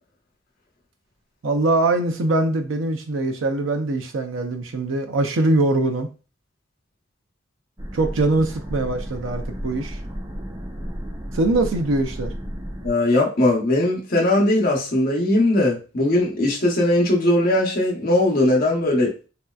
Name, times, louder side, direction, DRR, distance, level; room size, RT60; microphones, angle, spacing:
voice 1, 1.4-6.1 7.9-10.0 11.3-12.3, right 2 dB, 80° right, 6 dB, 0.6 m, -22 dB
sound 1, 7.8-12.9, equal, 20° right, 0.5 m, -32 dB
voice 2, 12.8-19.1, left 1 dB, 50° left, -1 dB, 0.9 m, -19 dB
3.3 x 2.7 x 2.3 m, 0.34 s
head